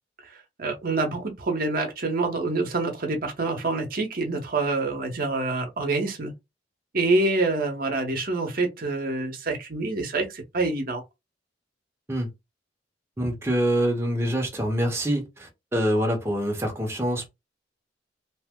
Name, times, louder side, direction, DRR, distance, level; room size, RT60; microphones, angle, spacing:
voice 1, 0.6-6.3 6.9-11.0, right 3 dB, 50° right, 0.8 m, -26 dB
voice 2, 13.2-17.3, equal, 15° right, 0.7 m, -25 dB
2.9 x 2.0 x 3.5 m
head